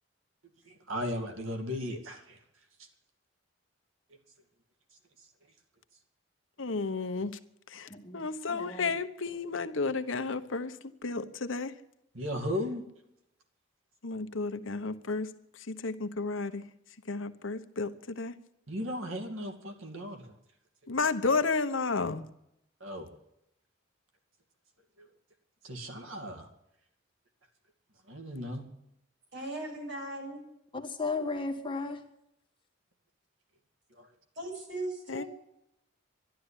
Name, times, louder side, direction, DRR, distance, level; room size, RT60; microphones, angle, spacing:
voice 1, 0.6-2.4 12.1-12.8 18.7-20.3 22.8-23.1 25.0-25.1 25.6-26.5 28.1-28.6 34.0-34.1, equal, 85° right, 2.5 m, -36 dB
voice 2, 6.6-7.3 7.7-10.7 11.0-11.7 14.0-15.3 15.7-16.6 17.1-18.3 20.9-22.2 35.1-35.2, left 4 dB, 75° left, 1.1 m, -32 dB
voice 3, 7.9-8.2 8.5-8.9 30.7-32.0, left 3 dB, 25° left, 1.6 m, -35 dB
voice 4, 29.3-30.4 34.4-35.3, right 1 dB, 60° right, 6.9 m, -38 dB
12.0 x 12.0 x 9.9 m
head